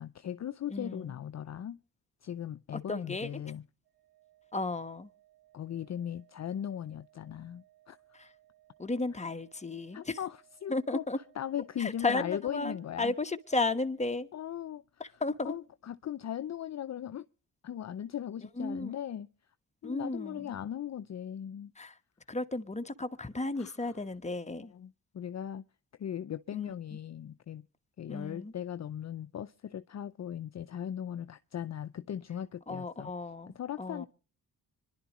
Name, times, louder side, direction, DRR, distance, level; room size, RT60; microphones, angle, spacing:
voice 1, 0.0-1.8 2.2-3.6 5.5-8.0 9.9-11.0 11.4-13.1 14.3-14.8 15.4-17.3 17.6-19.3 19.8-21.7 23.6-23.9 24.7-25.6 26.0-27.7 28.0-33.1 33.5-34.1, left 10 dB, 45° left, 0.6 m, -38 dB
voice 2, 0.7-1.2 2.9-3.3 4.5-5.1 8.1-8.3 8.8-10.2 10.7-11.2 11.8-14.3 15.0-15.5 18.6-18.9 19.8-20.5 21.8-22.0 22.3-24.7 26.5-26.7 28.1-28.5 32.7-34.1, left 3 dB, 20° left, 1.2 m, -34 dB
Organ, 3.8-14.5, right 15 dB, 90° right, 6.3 m, -65 dB
25.5 x 11.5 x 3.0 m
supercardioid pair, 55°, 37 cm